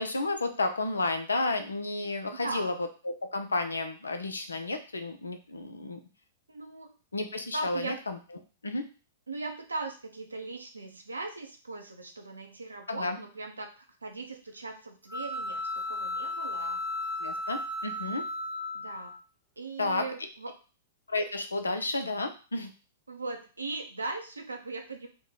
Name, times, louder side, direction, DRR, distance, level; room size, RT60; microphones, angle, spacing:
voice 1, 0.0-2.7 3.0-6.0 7.1-8.2 8.6-8.8 12.9-13.2 17.2-18.2 19.8-20.0 21.1-22.7, left 2 dB, 75° left, 7 dB, 0.5 m, -31 dB
voice 2, 2.3-2.8 6.5-6.9 7.5-8.0 9.3-16.8 18.7-19.1 19.6-20.5 23.1-25.1, right 3 dB, 80° right, 3 dB, 0.5 m, -39 dB
sound 1, 15.1-19.2, left 2 dB, 5° left, 0.4 m, -35 dB
2.9 x 2.2 x 3.8 m, 0.35 s
figure-of-eight pair, 105°, 0 cm